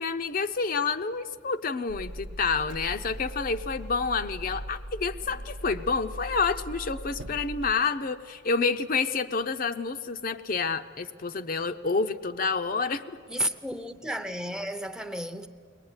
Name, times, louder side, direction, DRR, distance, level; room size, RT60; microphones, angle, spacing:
voice 1, 0.0-13.0, left 4 dB, 40° left, 0.5 m, -28 dB
sound 1, 1.9-7.7, equal, 60° right, 0.8 m, -40 dB
voice 2, 13.3-15.5, right 1 dB, 5° right, 0.6 m, -32 dB
22.5 x 19.0 x 9.6 m
head